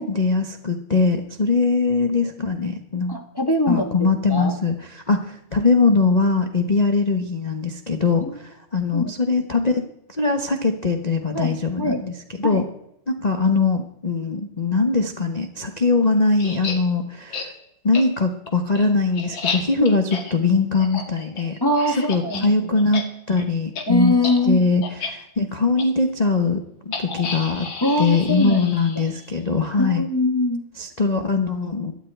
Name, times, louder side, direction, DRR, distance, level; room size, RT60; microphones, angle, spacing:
voice 1, 0.0-3.2 3.7-12.6 13.1-17.5 17.8-21.6 22.1-24.1 24.5-27.7 28.0-30.0 30.8-31.9, left 4 dB, 35° left, 4 dB, 0.7 m, -21 dB
voice 2, 3.1-4.0 4.3-4.5 8.2-8.4 8.9-9.1 11.3-12.0 12.4-12.6 19.8-19.9 21.6-22.8 23.9-24.6 27.8-28.7 29.8-30.6, left 1 dB, 10° left, 2 dB, 1.9 m, -22 dB
sound 1, 16.4-16.8 17.3-17.5 17.9-18.0 18.5-22.5 22.8-23.0 23.3-23.4 23.7-23.8 24.2-24.4 24.8-25.1 25.8-25.9 26.9-29.3, left 4 dB, 60° left, 2.6 m, -31 dB
13.0 x 11.5 x 9.2 m, 0.80 s
omnidirectional pair, 2.4 m